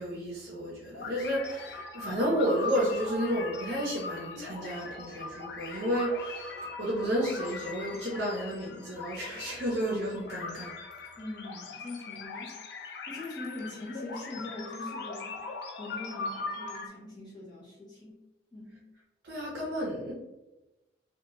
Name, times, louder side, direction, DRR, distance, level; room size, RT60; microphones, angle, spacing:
voice 1, 0.0-10.7 19.2-20.1, equal, 55° right, -4 dB, 0.6 m, -31 dB
sound 1, 0.9-16.9, left 3 dB, 55° left, 0.4 m, -40 dB
voice 2, 11.2-15.4 15.8-18.2 18.5-18.9, left 2 dB, 20° left, -7 dB, 0.7 m, -42 dB
2.7 x 2.2 x 2.9 m, 1.0 s
head